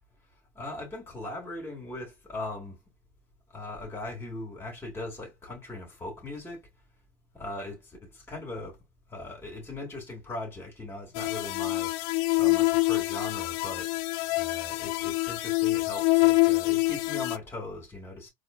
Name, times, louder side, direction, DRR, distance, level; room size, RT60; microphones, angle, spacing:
voice 1, 0.5-2.8 3.5-6.6 7.3-8.8 9.1-11.9 12.4-14.0 14.4-18.3, left 2 dB, 15° left, 2.3 m, -39 dB
sound 1, 11.1-17.4, left 23 dB, 70° left, 0.4 m, -26 dB
4.2 x 2.7 x 2.5 m
supercardioid pair, 105°, 17 cm